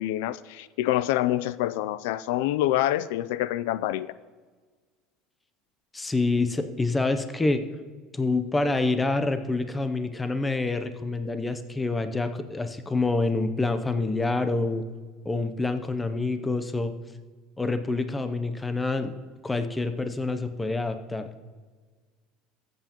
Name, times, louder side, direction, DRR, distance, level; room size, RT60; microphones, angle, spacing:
voice 1, 0.0-4.1, left 14 dB, 85° left, 17 dB, 0.3 m, -26 dB
voice 2, 5.9-7.6 8.1-14.8 15.2-16.9 17.6-19.1 19.4-21.3, left 3 dB, 10° left, 9 dB, 0.6 m, -27 dB
14.0 x 7.9 x 3.0 m, 1.5 s
cardioid pair, 150°, 0 cm